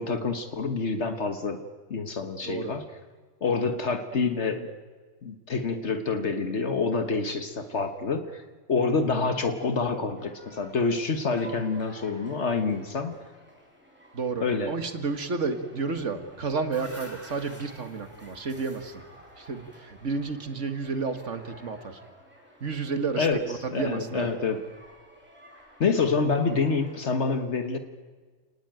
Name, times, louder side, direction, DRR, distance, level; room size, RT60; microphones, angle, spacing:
voice 1, 0.0-1.6 1.9-2.9 3.4-4.7 5.2-8.4 8.7-13.2 14.4-14.7 23.2-24.7 25.8-27.8, left 4 dB, 65° left, 8 dB, 1.6 m, -27 dB
sound 1, 10.2-27.1, equal, 10° right, 5.6 m, -53 dB
voice 2, 14.1-19.0 19.4-22.0 22.6-24.3, right 4 dB, 75° right, 8 dB, 2.1 m, -31 dB
sound 2, 16.2-20.5, equal, 10° left, 3.5 m, -49 dB
29.5 x 19.5 x 9.1 m, 1.4 s
omnidirectional pair, 1.3 m